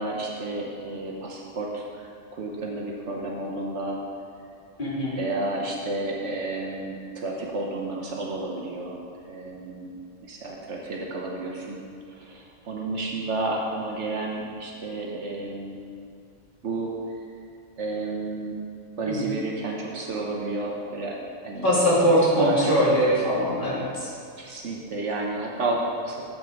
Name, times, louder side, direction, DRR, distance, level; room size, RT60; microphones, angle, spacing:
voice 1, 0.0-4.0 5.2-9.0 9.3-9.9 10.2-11.8 12.1-15.8 16.6-16.9 17.8-18.6 19.0-21.7 22.0-22.8 24.4-26.2, right 2 dB, 60° right, -2 dB, 1.2 m, -31 dB
voice 2, 4.8-5.2 19.0-19.2 21.6-24.1, equal, 40° left, -8 dB, 2.4 m, -21 dB
7.6 x 5.9 x 5.1 m, 2.4 s
omnidirectional pair, 1.4 m